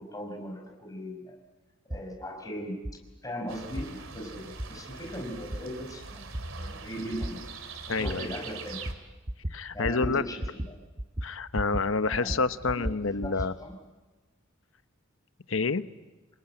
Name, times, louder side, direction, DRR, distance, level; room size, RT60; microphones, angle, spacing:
voice 1, 0.0-1.4 1.9-2.8 3.2-7.4 7.9-8.8 9.7-10.8 12.1-13.8, equal, 15° left, 2 dB, 5.2 m, -39 dB
sound 1, 1.9-2.1 2.8-3.0 3.8-3.9 4.6-4.7 5.5-5.6 6.3-6.4 7.2-7.3 8.0-8.2 8.9-9.0 9.3-9.6 9.8-10.1 10.4-10.7 11.0-11.9 12.1-13.5, right 1 dB, 25° right, 0.9 m, -33 dB
sound 2, 3.5-8.9, right 4 dB, 80° right, 2.5 m, -42 dB
voice 2, 7.9-8.3 9.5-10.2 11.2-13.5 15.5-15.8, left 4 dB, 70° left, 12 dB, 1.0 m, -28 dB
27.0 x 21.0 x 8.9 m, 1.2 s
head